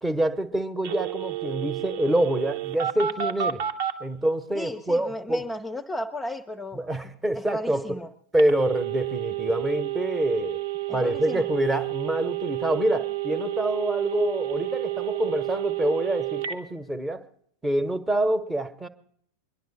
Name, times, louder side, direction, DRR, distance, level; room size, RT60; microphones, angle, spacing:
voice 1, 0.0-3.6 4.0-5.5 6.7-7.8 8.3-10.6 10.9-17.2 17.6-18.9, right 1 dB, 10° right, 13 dB, 1.2 m, -26 dB
Telephone, 0.8-3.9 8.4-16.6, right 13 dB, 50° right, 1.2 m, -30 dB
voice 2, 4.5-6.8 7.3-8.1 10.9-11.4, left 1 dB, 10° left, 4 dB, 0.7 m, -34 dB
23.5 x 11.0 x 4.2 m, 0.65 s
figure-of-eight pair, 90°, 0 cm